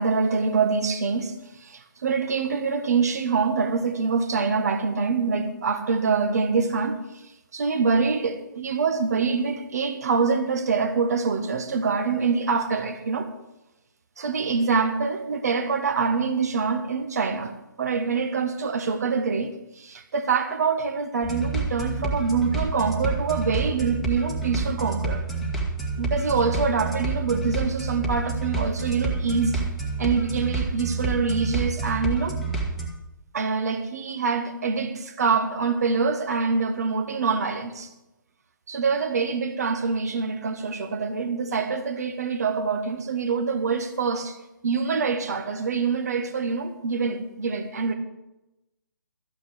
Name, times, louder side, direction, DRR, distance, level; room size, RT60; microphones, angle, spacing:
voice 1, 0.0-7.0 7.5-13.3 14.2-17.5 17.8-25.2 26.0-29.6 30.0-32.4 33.3-37.9 38.7-44.4 44.6-47.9, right 5 dB, 50° right, 1.5 m, -25 dB
sound 1, 21.2-32.9, right 4 dB, ahead, 1.5 m, -28 dB
13.5 x 9.1 x 6.3 m
figure-of-eight pair, 140°, 11 cm